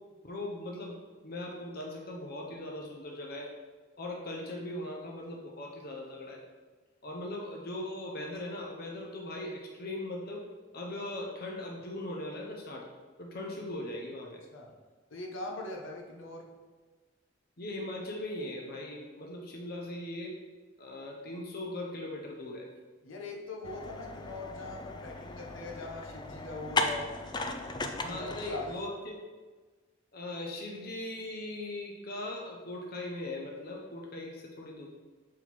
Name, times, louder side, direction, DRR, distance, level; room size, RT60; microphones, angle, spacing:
voice 1, 0.2-0.9 1.2-3.5 4.0-6.4 7.0-10.4 10.7-12.9 13.2-14.4 17.6-20.3 20.8-22.7 28.0-29.2 30.1-34.9, left 1 dB, 50° left, -1 dB, 0.8 m, -39 dB
voice 2, 14.2-14.7 15.1-16.5 23.0-27.1 28.0-28.7, left 2 dB, 75° left, 0 dB, 1.0 m, -41 dB
sound 1, 23.6-28.7, left 3 dB, 20° left, 0.4 m, -36 dB
6.2 x 4.5 x 4.3 m, 1.3 s
head